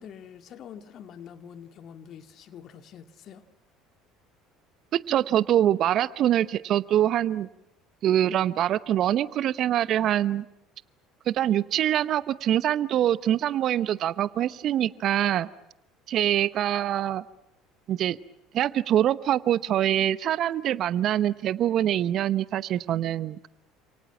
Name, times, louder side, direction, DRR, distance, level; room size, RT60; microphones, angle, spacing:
voice 1, 0.0-3.4, left 8 dB, 50° left, 2.3 m, -45 dB
voice 2, 4.9-7.5 8.0-10.4 11.3-15.5 16.1-17.2 17.9-18.2 18.5-23.5, right 11 dB, 50° right, 0.9 m, -24 dB
29.0 x 28.0 x 6.0 m
hypercardioid pair, 65°, 0 cm